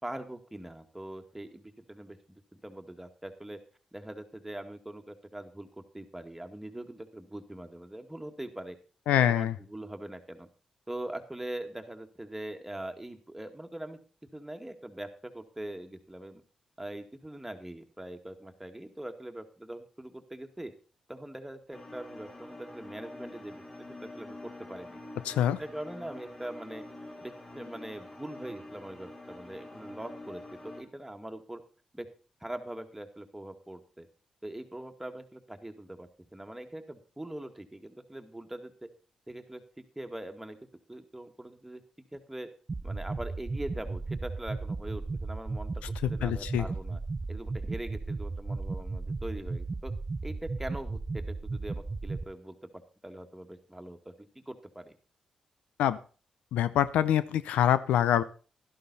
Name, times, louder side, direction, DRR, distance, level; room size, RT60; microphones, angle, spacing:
voice 1, 0.0-3.6 3.9-5.7 5.9-8.8 9.3-10.5 10.9-14.0 14.3-16.4 16.8-20.7 21.1-25.0 25.6-26.8 27.2-31.6 31.9-32.1 32.4-34.1 34.4-38.9 39.3-40.6 40.9-41.8 42.1-42.5 42.8-47.0 47.3-49.9 50.2-55.0, right 1 dB, 10° right, 5 dB, 1.9 m, -42 dB
voice 2, 9.1-9.5 25.3-25.6 46.0-46.6 55.8-56.0 56.5-58.2, left 11 dB, 85° left, 15 dB, 0.5 m, -25 dB
sound 1, 21.7-30.8, left 2 dB, 30° left, 3.6 m, -46 dB
sound 2, 42.7-52.2, right 3 dB, 35° right, 0.7 m, -35 dB
12.0 x 11.5 x 4.1 m, 0.37 s
supercardioid pair, 55°, 2 cm